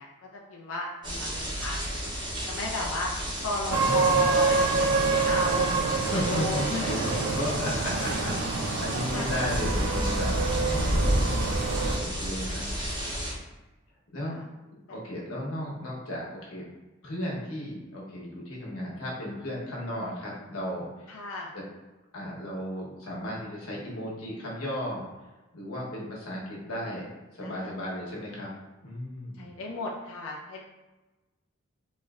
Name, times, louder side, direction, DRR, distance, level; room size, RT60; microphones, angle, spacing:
voice 1, 0.0-2.1 2.5-3.1 3.4-5.8 6.1-7.2 9.1-9.4 12.5-12.6 14.3-14.4 14.9-15.0 21.1-21.5 27.4-27.7 29.4-30.6, left 2 dB, 75° left, -2 dB, 0.5 m, -35 dB
sound 1, 1.0-13.3, equal, 20° right, 0.7 m, -31 dB
sound 2, 3.7-12.0, right 4 dB, 75° right, 0.4 m, -27 dB
voice 2, 3.8-4.4 6.1-11.4 12.0-12.7 14.1-14.4 14.9-16.6 17.0-21.2 21.5-21.6 22.1-25.0 25.5-27.1 27.3-28.5 28.8-29.5, left 1 dB, 90° left, -4 dB, 1.1 m, -35 dB
4.0 x 3.1 x 2.4 m, 1.1 s
head